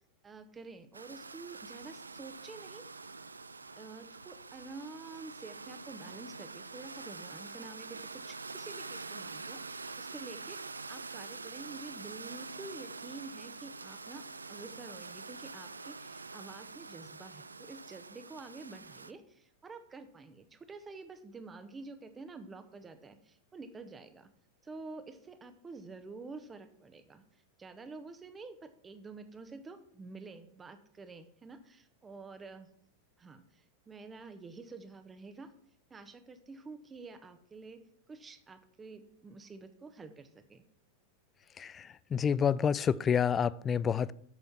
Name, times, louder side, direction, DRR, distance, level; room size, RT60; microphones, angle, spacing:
voice 1, 0.2-2.9 3.8-24.3 24.6-27.2 27.6-32.7 33.2-35.5 35.9-40.6, right 3 dB, 15° right, 1.0 m, -49 dB
sound 1, 0.9-19.1, right 4 dB, 80° right, 0.4 m, -46 dB
voice 2, 41.6-44.1, left 7 dB, 20° left, 0.3 m, -29 dB
8.2 x 6.8 x 5.9 m
figure-of-eight pair, 90°, 0 cm